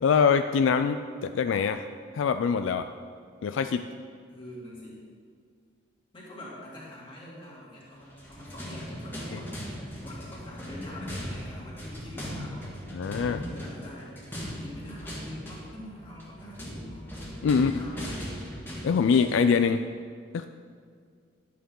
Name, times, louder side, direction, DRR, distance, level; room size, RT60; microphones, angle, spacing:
voice 1, 0.0-1.0 1.2-1.9 2.1-2.9 3.4-3.9 12.9-13.4 17.4-17.7 18.8-19.8 20.3-20.5, left 6 dB, 75° left, 9 dB, 0.3 m, -23 dB
voice 2, 4.3-5.0 6.1-12.7 13.4-17.1 17.5-18.4, left 1 dB, 25° left, -6 dB, 2.5 m, -44 dB
sound 1, 8.0-19.5, equal, 10° left, 1.6 m, -39 dB
11.5 x 8.4 x 3.8 m, 2.1 s
head